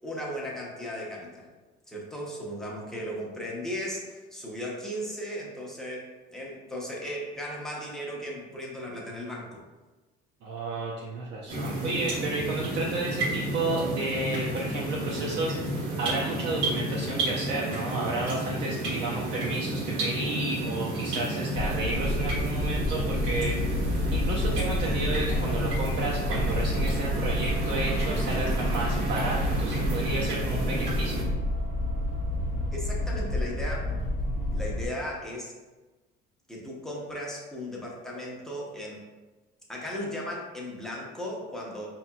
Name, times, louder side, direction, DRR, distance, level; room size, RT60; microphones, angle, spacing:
voice 1, 0.0-1.5 1.9-9.6 32.7-33.9 34.5-35.5 36.5-39.0 39.7-41.9, equal, ahead, -3 dB, 0.7 m, -36 dB
voice 2, 10.4-15.5 16.0-23.6 24.1-31.3, right 2 dB, 60° right, -4 dB, 0.6 m, -32 dB
sound 1, 11.5-31.2, right 1 dB, 80° right, 1.2 m, -31 dB
sound 2, 21.5-34.9, left 1 dB, 40° left, 0.6 m, -29 dB
4.7 x 2.9 x 2.2 m, 1.2 s
cardioid pair, 145°, 20 cm